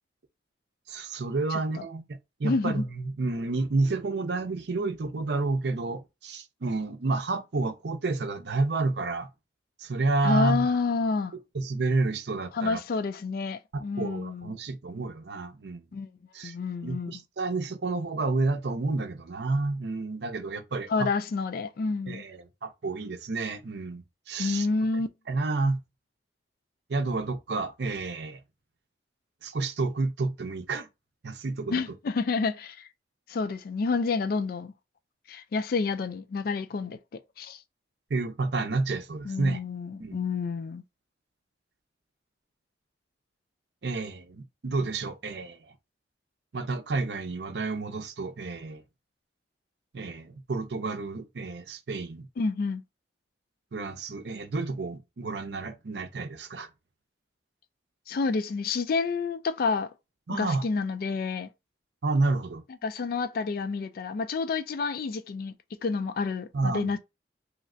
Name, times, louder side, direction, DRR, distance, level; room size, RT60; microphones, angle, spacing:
voice 1, 0.9-9.3 9.8-10.7 11.5-12.8 13.7-15.8 16.3-16.5 16.8-21.1 22.1-24.7 25.3-25.8 26.9-28.4 29.4-30.9 31.2-31.8 38.1-39.6 40.0-40.2 43.8-45.7 46.5-48.8 49.9-52.3 53.7-56.7 60.3-60.7 62.0-62.6 66.5-66.9, right 3 dB, 65° right, 0.6 m, -30 dB
voice 2, 2.4-2.8 10.2-11.3 12.5-14.5 15.9-16.1 16.4-17.2 20.9-22.2 24.4-25.1 31.7-32.9 33.3-34.7 35.3-37.0 37.4-37.6 39.3-40.8 52.4-52.8 58.1-59.9 60.3-61.5 62.8-65.5 65.8-67.0, left 4 dB, 55° left, 0.3 m, -29 dB
3.2 x 2.8 x 2.6 m
head